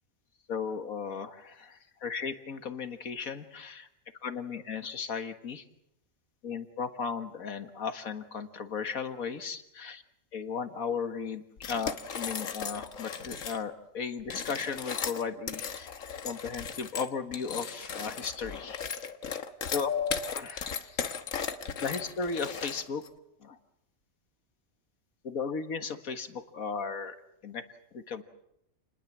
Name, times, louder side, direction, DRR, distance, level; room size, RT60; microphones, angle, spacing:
voice 1, 0.5-3.9 4.2-5.7 6.4-10.0 10.3-19.0 19.7-21.0 21.8-23.0 23.4-23.6 25.2-27.2 27.4-27.6 27.9-28.2, left 5 dB, 85° left, 9 dB, 2.1 m, -35 dB
sound 1, 11.6-13.6 14.2-23.1, left 6 dB, 70° left, 1.7 m, -37 dB
29.5 x 20.5 x 7.4 m, 0.79 s
omnidirectional pair, 1.4 m